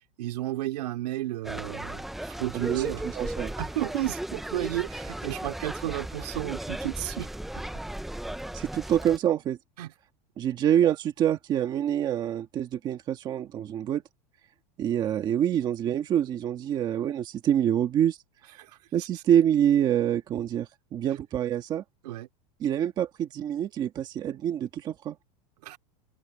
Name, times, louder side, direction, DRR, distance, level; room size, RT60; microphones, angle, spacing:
voice 1, 0.2-3.0 3.6-7.3 9.8-9.9 18.6-18.8 22.0-22.3 25.6-25.8, right 15 dB, 85° right, 3.2 m, -32 dB
sound 1, 1.4-9.2, right 1 dB, ahead, 0.4 m, -36 dB
voice 2, 2.6-3.5 8.5-9.6 10.4-14.0 14.8-18.2 18.9-21.8 22.6-25.2, right 10 dB, 20° right, 1.6 m, -26 dB
supercardioid pair, 180°, 20 cm